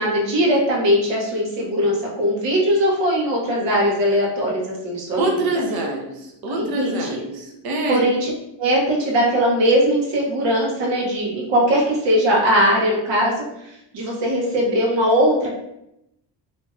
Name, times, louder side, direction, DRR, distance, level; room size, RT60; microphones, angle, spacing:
voice 1, 0.0-5.5 6.5-7.2 7.9-8.3 8.6-13.4 13.9-15.5, equal, 75° right, -2 dB, 1.1 m, -20 dB
voice 2, 5.2-8.0, right 2 dB, 55° right, 1 dB, 0.8 m, -25 dB
3.0 x 2.8 x 2.3 m, 0.83 s
cardioid pair, 125°, 44 cm